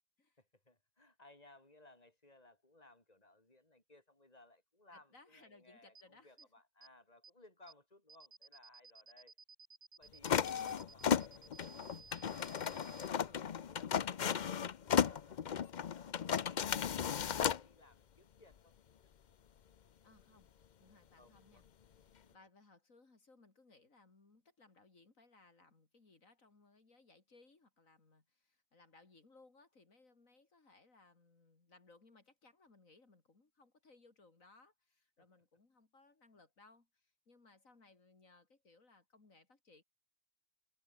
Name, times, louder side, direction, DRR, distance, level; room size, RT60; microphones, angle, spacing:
voice 1, 0.4-9.3 10.0-10.7 10.9-12.4 12.8-18.8 21.2-21.6 22.2-22.5 35.2-35.3, left 2 dB, 30° left, 5.2 m, -63 dB
voice 2, 4.9-6.5 20.0-20.5 20.8-21.7 22.1-39.8, left 3 dB, 75° left, 3.7 m, -65 dB
sound 1, 5.9-6.0 6.4-6.5 6.8-6.9 7.2-7.3 7.7-7.8 8.1-13.1, right 5 dB, 60° right, 2.1 m, -57 dB
sound 2, 10.2-17.6, left 8 dB, 45° left, 0.6 m, -35 dB
omnidirectional pair, 1.4 m